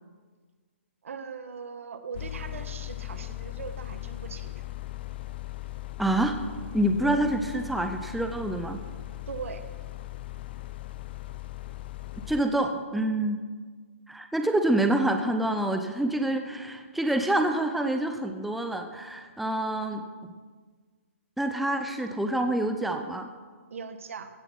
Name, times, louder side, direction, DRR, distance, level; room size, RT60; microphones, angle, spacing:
voice 1, 1.0-4.5 7.0-7.2 9.3-9.6 23.7-24.3, right 5 dB, 70° right, 9 dB, 1.3 m, -40 dB
sound 1, 2.1-12.4, left 16 dB, 45° left, 0.5 m, -39 dB
voice 2, 6.0-6.4 6.7-8.8 12.2-13.4 14.1-20.0 21.4-23.3, right 1 dB, ahead, 6 dB, 0.6 m, -27 dB
16.0 x 6.8 x 5.8 m, 1.5 s
hypercardioid pair, 150°, 8 cm